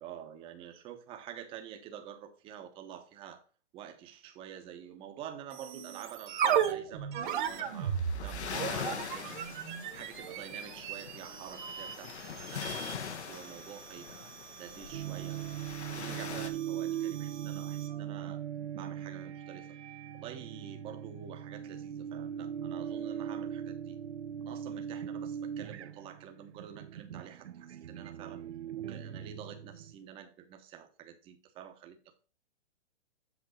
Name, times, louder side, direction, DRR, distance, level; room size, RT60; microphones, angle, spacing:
voice 1, 0.0-3.4 3.7-7.1 7.4-12.7 13.1-15.4 15.9-18.4 18.8-19.8 20.1-24.0 24.4-28.4 28.7-32.0, right 9 dB, 15° right, 0.9 m, -48 dB
sound 1, 5.5-18.0, right 8 dB, 45° right, 1.4 m, -37 dB
sound 2, 7.2-16.5, left 7 dB, 75° left, 1.4 m, -43 dB
sound 3, 14.9-30.0, right 9 dB, 70° right, 0.7 m, -40 dB
8.2 x 6.0 x 3.9 m
hypercardioid pair, 155°, 34 cm